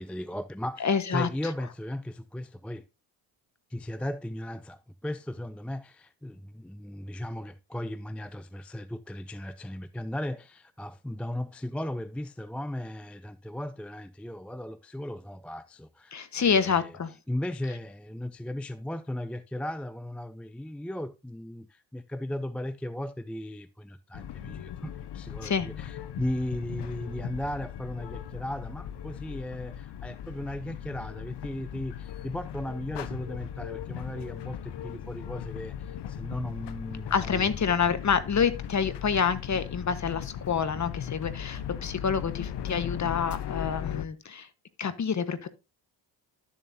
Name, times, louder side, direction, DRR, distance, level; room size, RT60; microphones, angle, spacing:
voice 1, 0.0-2.8 3.7-17.0 17.3-37.5, left 1 dB, 5° left, 0.4 m, -36 dB
voice 2, 0.8-1.3 16.1-17.1 25.4-25.7 37.1-44.5 44.8-45.5, left 6 dB, 35° left, 1.3 m, -27 dB
sound 1, 24.1-44.1, left 10 dB, 60° left, 1.0 m, -38 dB
12.0 x 7.4 x 2.8 m
supercardioid pair, 75°, 47 cm